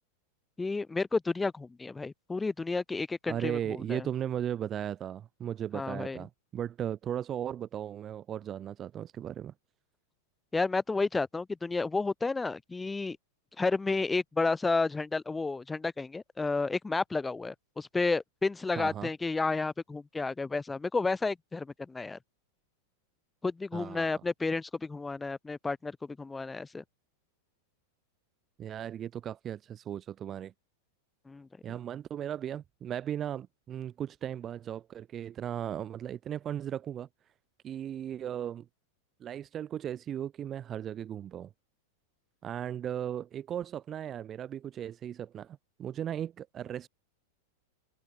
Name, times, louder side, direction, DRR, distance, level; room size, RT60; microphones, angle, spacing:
voice 1, 0.6-4.1 5.7-6.2 10.5-13.2 13.6-22.2 23.4-26.8 31.3-31.5, left 3 dB, 10° left, 3.1 m, -31 dB
voice 2, 3.3-9.5 18.8-19.1 23.7-24.2 28.6-30.5 31.6-37.1 37.6-38.6 39.2-41.5 42.4-46.9, right 10 dB, 30° right, 1.3 m, -36 dB
hypercardioid pair, 100°, 0 cm